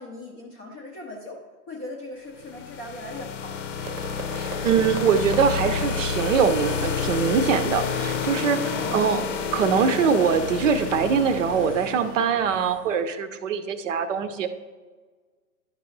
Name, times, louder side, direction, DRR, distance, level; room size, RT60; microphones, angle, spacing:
voice 1, 0.0-1.4 1.7-3.6 8.6-9.0, left 2 dB, 15° left, -1 dB, 0.5 m, -38 dB
sound 1, 2.4-12.2, left 7 dB, 50° left, 0.8 m, -30 dB
sound 2, 3.3-13.0, right 3 dB, 20° right, 0.8 m, -39 dB
sound 3, 3.8-9.7, right 5 dB, 75° right, 0.9 m, -40 dB
voice 2, 4.3-8.6 8.9-9.2 9.5-14.5, right 6 dB, 50° right, 10 dB, 0.7 m, -23 dB
11.5 x 5.3 x 3.1 m, 1.4 s
figure-of-eight pair, 120°, 48 cm